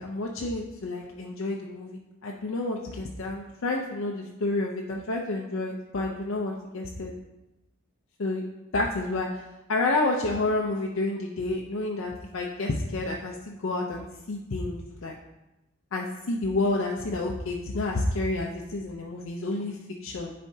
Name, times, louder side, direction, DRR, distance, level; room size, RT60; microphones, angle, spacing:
voice 1, 0.0-7.1 8.2-8.4 8.7-9.3 9.7-15.2 15.9-20.3, left 2 dB, 80° left, -1 dB, 0.6 m, -29 dB
9.9 x 4.3 x 2.7 m, 0.98 s
head